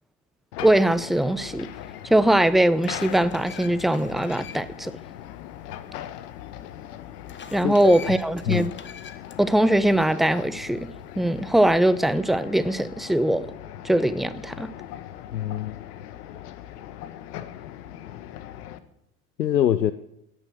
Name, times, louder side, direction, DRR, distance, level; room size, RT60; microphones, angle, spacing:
sound 1, 0.5-18.8, left 11 dB, 65° left, 1.3 m, -40 dB
voice 1, 0.6-1.7 2.0-4.9 7.5-8.7 9.4-10.9 11.2-13.5 13.8-14.7, right 1 dB, ahead, 0.6 m, -21 dB
sound 2, 1.9-2.0 2.5-4.9 5.2-5.3 7.3-9.4, left 7 dB, 25° left, 1.2 m, -44 dB
voice 2, 15.3-15.8 19.4-19.9, left 11 dB, 90° left, 0.7 m, -24 dB
16.5 x 8.9 x 6.4 m
hypercardioid pair, 80°, 49 cm